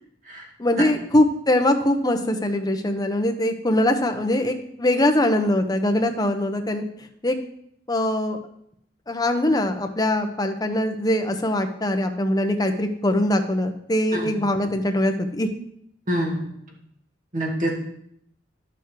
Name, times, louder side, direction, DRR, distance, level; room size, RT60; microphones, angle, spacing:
voice 1, 0.6-6.8 7.2-7.4 7.9-8.4 9.1-15.5, left 1 dB, 20° left, 5 dB, 1.0 m, -22 dB
voice 2, 16.1-16.5 17.3-17.7, equal, 45° right, -1 dB, 2.3 m, -25 dB
11.0 x 7.2 x 4.7 m, 0.71 s
head